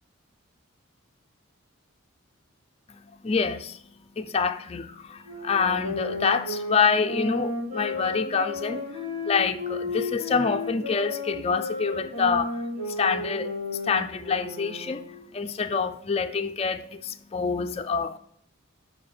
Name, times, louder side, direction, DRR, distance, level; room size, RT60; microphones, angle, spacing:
voice 1, 3.2-3.8 4.2-13.5 13.8-18.2, left 5 dB, 30° left, 0.4 m, -27 dB
sound 1, 5.2-15.3, left 2 dB, 80° right, 3.1 m, -33 dB
7.6 x 4.6 x 4.3 m
head